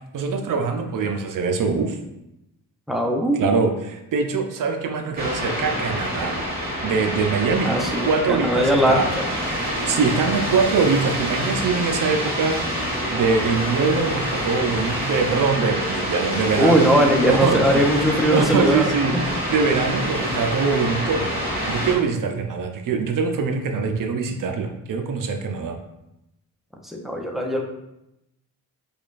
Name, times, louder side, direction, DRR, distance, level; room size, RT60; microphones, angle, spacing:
voice 1, 0.0-2.0 3.4-6.4 6.8-7.8 8.1-9.1 9.8-12.8 13.1-25.8, right 5 dB, 60° right, 5 dB, 0.5 m, -23 dB
voice 2, 2.9-3.4 7.6-9.3 16.5-18.9 26.8-27.6, equal, ahead, 1 dB, 0.5 m, -20 dB
sound 1, 5.2-21.9, equal, 25° right, 1.5 m, -27 dB
4.9 x 2.3 x 2.4 m, 0.86 s
cardioid pair, 80°, 37 cm